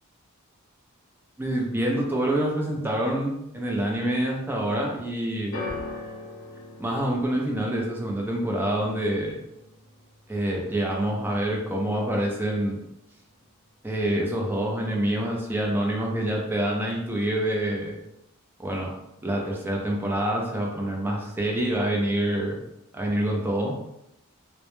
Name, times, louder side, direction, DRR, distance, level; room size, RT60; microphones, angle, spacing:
voice 1, 1.4-5.5 6.8-9.4 10.3-12.8 13.8-18.0 18.6-18.9 19.2-22.6 22.9-23.8, right 1 dB, 10° right, -1 dB, 0.3 m, -26 dB
sound 1, 5.5-11.8 12.1-12.7 13.5-13.6, left 3 dB, 55° left, 0.6 m, -41 dB
2.1 x 2.0 x 2.9 m, 0.84 s
head